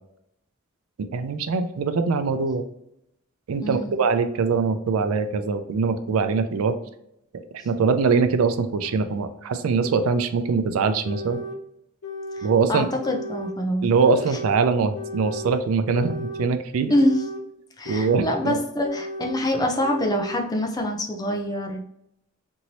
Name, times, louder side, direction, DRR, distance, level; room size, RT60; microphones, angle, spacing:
voice 1, 1.1-2.6 3.5-6.7 7.6-11.4 12.4-12.9 13.8-16.9 17.9-18.6, right 5 dB, 80° right, 9 dB, 0.4 m, -22 dB
voice 2, 3.6-4.0 12.4-13.9 16.9-17.2 17.8-21.8, left 1 dB, 20° left, 2 dB, 0.5 m, -25 dB
sound 1, 8.8-8.9 9.8-9.9 10.8-11.6 12.0-12.6 13.0-13.6 14.0-14.5 14.9-15.5 15.9-16.5 16.9-17.4 17.8-18.4 18.8-19.4 19.8-20.4, left 1 dB, 85° left, 0.5 m, -34 dB
3.0 x 2.7 x 2.8 m, 0.79 s
head